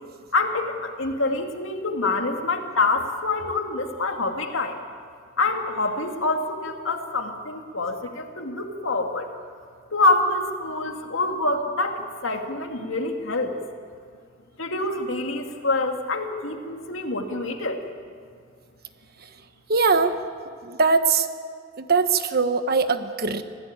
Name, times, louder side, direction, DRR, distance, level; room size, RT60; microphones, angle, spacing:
voice 1, 0.3-4.8 5.4-9.3 9.9-13.5 14.6-17.8, left 2 dB, 80° left, 4 dB, 2.2 m, -26 dB
voice 2, 19.7-20.2 20.6-21.3 21.8-23.4, right 4 dB, 50° right, 9 dB, 1.2 m, -21 dB
26.0 x 16.0 x 8.7 m, 2.1 s
head